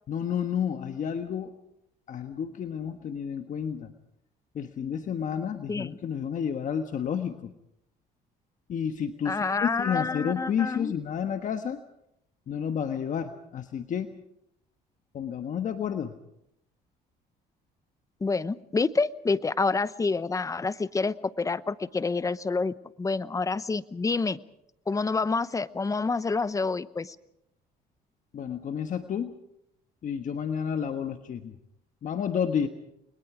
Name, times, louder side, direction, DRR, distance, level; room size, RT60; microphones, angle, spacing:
voice 1, 0.1-1.5 2.1-3.9 4.5-7.5 8.7-11.8 12.5-14.1 15.1-16.1 28.3-29.3 30.0-31.5 32.0-32.7, left 8 dB, 50° left, 7 dB, 1.4 m, -30 dB
voice 2, 9.2-10.9 18.2-24.4 24.9-27.2, left 4 dB, 20° left, 15 dB, 0.9 m, -28 dB
30.0 x 21.5 x 5.0 m, 0.78 s
cardioid pair, 110°, 17 cm